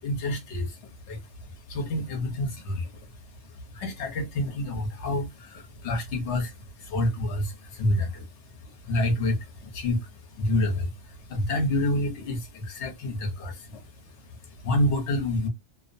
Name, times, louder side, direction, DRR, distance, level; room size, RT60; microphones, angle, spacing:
voice 1, 0.0-3.1 3.5-8.3 8.6-14.2 14.5-15.5, left 1 dB, 70° left, 1.1 m, -29 dB
2.7 x 2.0 x 2.5 m
omnidirectional pair, 1.2 m